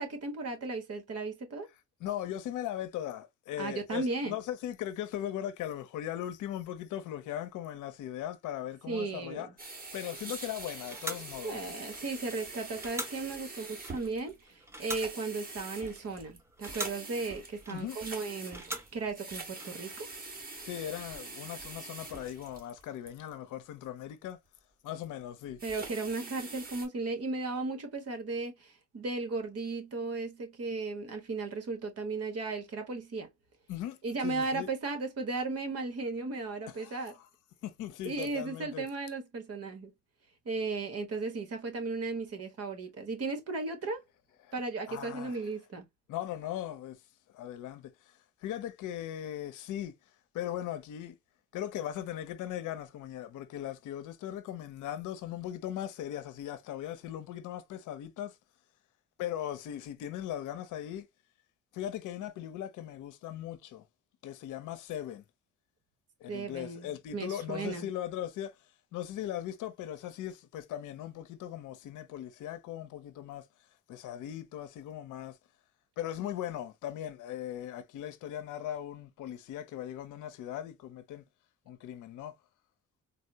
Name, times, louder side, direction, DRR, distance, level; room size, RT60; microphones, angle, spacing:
voice 1, 0.0-1.7 3.6-4.4 8.9-9.5 11.4-20.1 25.6-33.3 34.0-37.1 38.0-39.9 40.4-44.0 44.5-45.9 66.3-67.9, right 3 dB, 55° right, 1.3 m, -36 dB
voice 2, 2.0-9.5 9.9-11.6 17.7-18.0 20.6-24.4 24.8-25.6 33.7-34.7 36.7-37.2 37.6-38.9 44.4-44.5 44.9-45.4 46.1-47.0 47.3-49.9 50.3-51.2 51.5-58.4 59.2-61.1 61.7-63.8 64.2-65.2 66.2-68.6 68.9-73.5 73.9-75.4 76.0-81.2 81.7-82.3, left 11 dB, 85° left, 0.7 m, -39 dB
sound 1, 9.6-23.1 25.4-26.9, right 3 dB, 30° right, 1.6 m, -45 dB
sound 2, 10.2-20.4, right 1 dB, 10° right, 0.7 m, -45 dB
4.0 x 2.0 x 2.7 m
cardioid pair, 90°, 30 cm